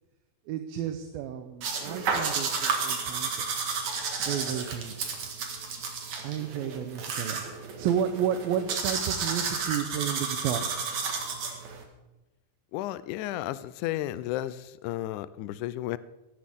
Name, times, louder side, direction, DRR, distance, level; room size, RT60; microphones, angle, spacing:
voice 1, 0.5-3.5 4.2-4.9 6.2-10.7, right 9 dB, 80° right, 7 dB, 2.6 m, -32 dB
sound 1, 1.6-11.8, right 5 dB, 55° right, 2.9 m, -32 dB
voice 2, 12.7-16.0, left 14 dB, 90° left, 15 dB, 1.7 m, -33 dB
18.0 x 14.5 x 3.6 m, 1.0 s
omnidirectional pair, 4.2 m